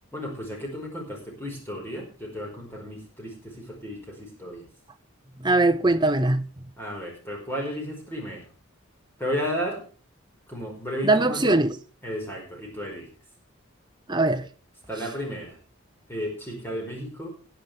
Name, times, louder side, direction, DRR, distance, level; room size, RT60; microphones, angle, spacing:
voice 1, 0.1-4.6 6.8-8.5 9.2-9.8 10.5-11.6 12.0-13.1 14.9-15.6 16.1-17.3, equal, 10° left, 4.8 m, -33 dB
voice 2, 5.4-6.4 11.0-11.7 14.1-14.5, right 2 dB, 20° right, 1.0 m, -21 dB
20.5 x 9.3 x 3.4 m
head